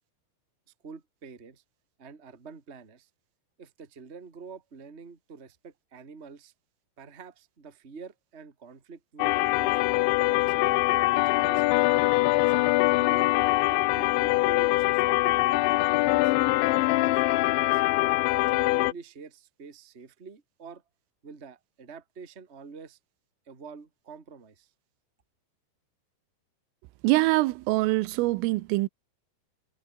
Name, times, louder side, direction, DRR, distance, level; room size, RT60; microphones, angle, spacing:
voice 1, 0.8-1.6 2.0-3.1 3.6-6.5 7.0-9.8 10.2-11.9 12.4-17.8 18.4-20.8 21.2-23.0 23.4-24.7, right 5 dB, 20° right, 1.6 m, -47 dB
sound 1, 9.2-18.9, left 20 dB, 80° left, 2.7 m, -23 dB
voice 2, 27.0-28.9, right 20 dB, 85° right, 3.3 m, -24 dB
omnidirectional pair, 5.9 m